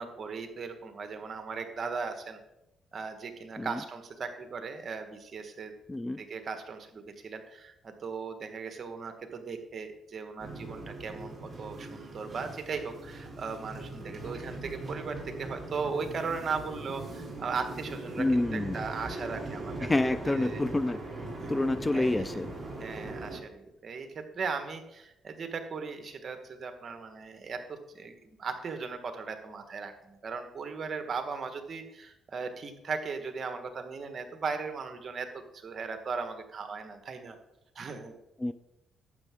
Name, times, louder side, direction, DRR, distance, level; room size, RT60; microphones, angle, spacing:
voice 1, 0.0-2.4 2.9-5.7 6.2-20.6 21.4-21.5 21.9-22.4 22.8-37.4 37.7-38.1, right 5 dB, 45° right, 7 dB, 1.5 m, -38 dB
voice 2, 5.9-6.2 18.2-18.8 19.8-21.0 21.5-22.5 38.4-38.5, left 2 dB, 15° left, 14 dB, 0.4 m, -28 dB
sound 1, 10.4-23.4, right 2 dB, 30° right, 3.8 m, -40 dB
12.0 x 8.4 x 3.7 m, 0.90 s
cardioid pair, 90°, 0 cm